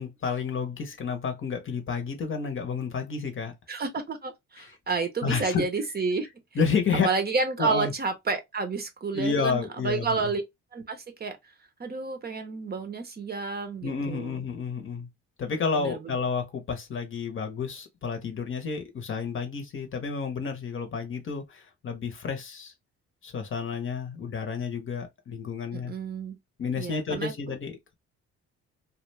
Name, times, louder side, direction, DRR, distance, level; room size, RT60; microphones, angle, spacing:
voice 1, 0.0-3.5 4.6-4.7 5.2-5.6 6.5-7.1 7.6-7.9 9.1-10.3 13.8-15.1 15.4-22.7 23.2-25.9 26.6-27.9, left 5 dB, 40° left, 0.8 m, -30 dB
voice 2, 3.7-6.3 7.0-10.4 10.7-11.4 11.8-14.4 15.7-16.0 25.7-26.4 26.8-27.3, right 4 dB, 30° right, 0.6 m, -30 dB
2.3 x 2.1 x 3.1 m
cardioid pair, 90°, 30 cm